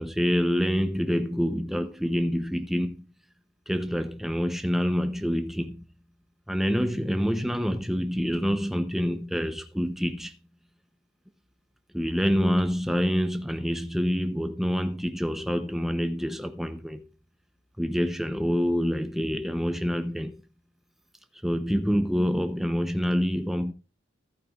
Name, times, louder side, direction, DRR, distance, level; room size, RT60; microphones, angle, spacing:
voice 1, 0.0-3.0 3.7-5.9 6.5-10.4 11.9-17.1 17.8-20.4 21.4-23.7, equal, ahead, 0.6 m, -27 dB
14.0 x 9.2 x 2.4 m
head